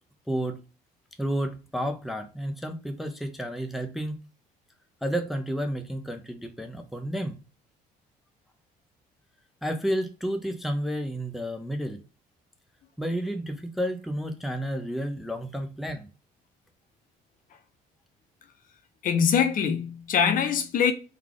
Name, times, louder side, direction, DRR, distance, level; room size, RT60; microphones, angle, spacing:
voice 1, 0.3-0.6 1.2-4.2 5.0-7.4 9.6-12.0 13.0-16.1, equal, ahead, 0.5 m, -31 dB
voice 2, 19.0-20.9, left 7 dB, 55° left, 0.7 m, -23 dB
3.4 x 2.3 x 3.6 m
cardioid pair, 110°, 17 cm